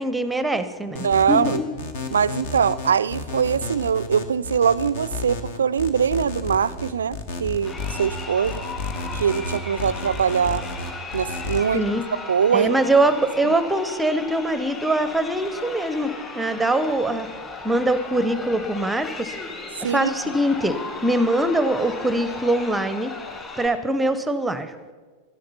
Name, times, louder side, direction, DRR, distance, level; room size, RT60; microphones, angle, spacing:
voice 1, 0.0-1.7 11.7-12.0 12.5-16.1 16.3-17.3 17.6-19.3 19.8-20.8 21.0-23.1 23.6-24.7, right 1 dB, 5° right, 12 dB, 0.7 m, -23 dB
sound 1, 0.9-11.6, left 3 dB, 55° left, 1.3 m, -32 dB
voice 2, 1.0-1.6 2.1-7.7 8.0-8.6 9.1-10.7 11.1-11.9 12.3-12.8 13.4-13.5 19.8-20.1, right 7 dB, 70° right, 19 dB, 0.3 m, -22 dB
Crowd, 7.6-23.7, left 3 dB, 20° left, 3.3 m, -36 dB
12.5 x 10.5 x 5.7 m, 1.4 s
figure-of-eight pair, 90°, 0 cm